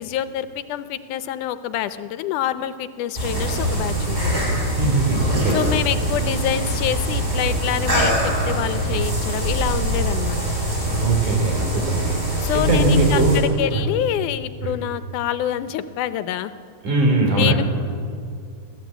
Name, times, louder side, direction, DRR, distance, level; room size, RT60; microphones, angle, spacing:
voice 1, 0.0-4.4 5.5-10.4 12.4-16.5 17.4-17.6, left 11 dB, 80° left, 12 dB, 2.3 m, -26 dB
sound 1, 3.1-13.4, right 1 dB, 10° right, 6.9 m, -23 dB
voice 2, 4.8-5.6 11.0-13.4 13.7-13.8 14.6-14.7 16.8-17.6, right 2 dB, 75° right, 2 dB, 5.5 m, -20 dB
26.5 x 15.5 x 8.1 m, 2.3 s
omnidirectional pair, 3.6 m